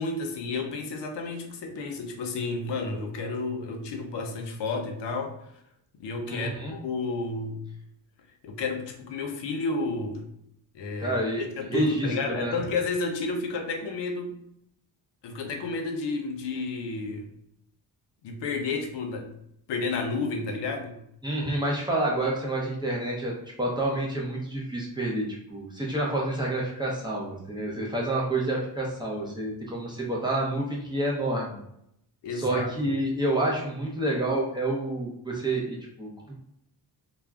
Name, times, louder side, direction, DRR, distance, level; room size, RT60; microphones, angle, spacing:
voice 1, 0.0-5.4 6.0-7.6 8.4-10.3 10.7-14.4 15.2-17.3 18.2-19.3 19.7-21.0 32.2-32.7, left 3 dB, 80° left, 4 dB, 0.6 m, -31 dB
voice 2, 6.3-6.7 11.0-12.5 21.2-23.3 23.6-31.6 32.3-36.3, right 1 dB, 10° right, -4 dB, 0.5 m, -29 dB
2.3 x 2.0 x 3.4 m, 0.76 s
wide cardioid pair, 150°, 41 cm